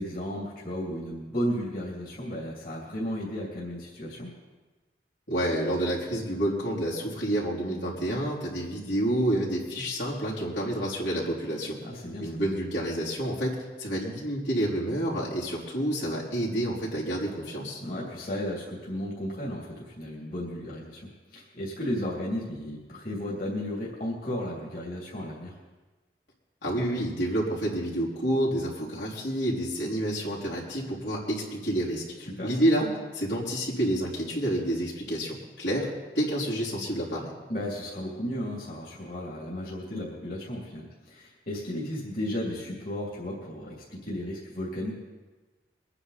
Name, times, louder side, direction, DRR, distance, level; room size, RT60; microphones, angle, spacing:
voice 1, 0.0-4.3 11.8-12.3 17.8-21.0 21.3-25.6 32.3-32.6 37.5-44.9, equal, 55° left, -5 dB, 3.0 m, -34 dB
voice 2, 5.3-11.7 12.2-13.5 13.8-17.8 26.6-32.9 33.1-35.9 36.1-37.3, right 1 dB, 90° left, -6 dB, 4.4 m, -29 dB
23.0 x 9.9 x 4.2 m, 1.3 s
head